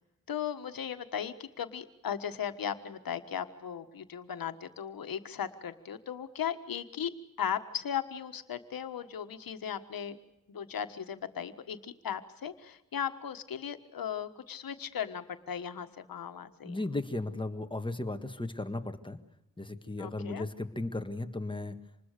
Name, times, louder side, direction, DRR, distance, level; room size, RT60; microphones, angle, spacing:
voice 1, 0.3-7.1 7.4-10.2 10.5-16.8 20.0-20.4, left 8 dB, 85° left, 9 dB, 1.5 m, -37 dB
voice 2, 16.6-19.2 19.6-21.8, left 2 dB, 15° left, 8 dB, 1.7 m, -35 dB
26.0 x 20.5 x 6.7 m, 0.85 s
cardioid pair, 75°, 34 cm